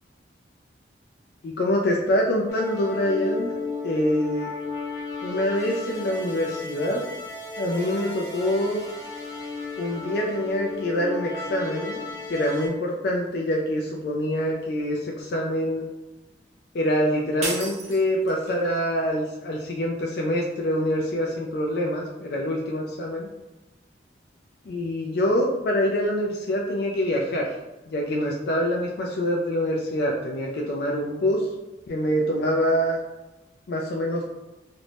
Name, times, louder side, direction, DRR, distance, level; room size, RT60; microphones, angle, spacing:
voice 1, 1.4-3.5 3.8-4.5 5.2-7.0 7.6-8.8 9.8-12.0 12.3-15.8 16.7-23.3 24.7-27.6 27.9-31.5 31.9-33.0 33.7-34.2, equal, 55° left, -1 dB, 0.3 m, -25 dB
sound 1, 2.5-12.7, left 3 dB, 20° left, 0.8 m, -34 dB
sound 2, 17.4-18.7, right 2 dB, 40° right, 0.5 m, -32 dB
2.5 x 2.1 x 3.2 m, 1.0 s
head